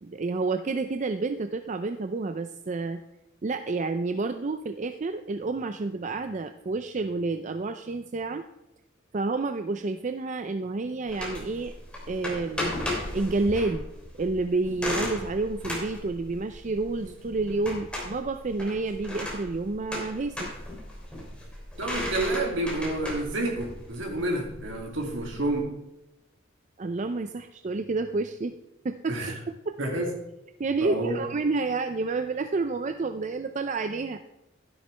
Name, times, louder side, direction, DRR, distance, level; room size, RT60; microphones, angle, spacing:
voice 1, 0.0-3.0 3.4-8.4 9.1-11.7 12.1-12.7 13.1-13.9 14.2-20.5 26.8-28.6 28.8-29.4 29.7-29.8 30.6-34.2, right 3 dB, 40° right, 9 dB, 0.4 m, -29 dB
sound 1, 11.1-25.6, left 1 dB, 5° left, 3.1 m, -36 dB
voice 2, 21.8-25.7 29.1-29.3 29.8-30.1 30.8-31.2, right 2 dB, 70° right, 0 dB, 2.5 m, -29 dB
12.0 x 11.5 x 3.3 m, 0.94 s
head